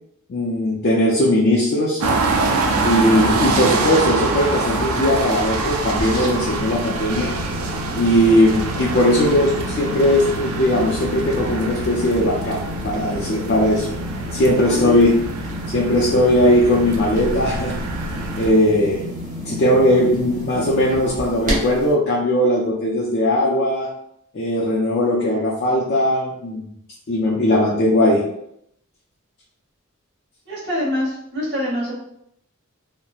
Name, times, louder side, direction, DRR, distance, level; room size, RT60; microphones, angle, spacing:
voice 1, 0.3-2.0 2.8-7.3 7.9-13.9 14.3-15.1 15.7-17.8 18.4-19.0 19.4-23.9 24.3-26.7 27.1-28.2, left 1 dB, 50° left, -4 dB, 0.4 m, -18 dB
sound 1, 2.0-18.5, right 3 dB, 80° right, 0.4 m, -25 dB
sound 2, 5.6-21.9, left 1 dB, 40° right, 0.8 m, -31 dB
voice 2, 14.7-15.0 30.5-32.0, equal, 55° right, -5 dB, 1.0 m, -25 dB
2.9 x 2.1 x 2.3 m, 0.74 s
head